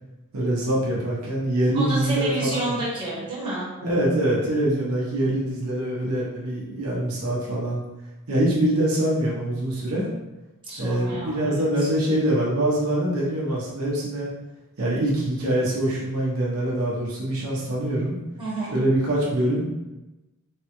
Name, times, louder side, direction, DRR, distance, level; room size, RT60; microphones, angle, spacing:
voice 1, 0.3-2.7 3.8-7.8 8.3-10.1 10.8-14.3 14.8-18.1 18.7-19.8, right 1 dB, 70° right, -5 dB, 0.7 m, -24 dB
voice 2, 1.7-3.7 10.6-11.9 18.4-18.7, right 2 dB, 25° right, -7 dB, 1.1 m, -30 dB
3.5 x 2.2 x 2.9 m, 1.0 s
head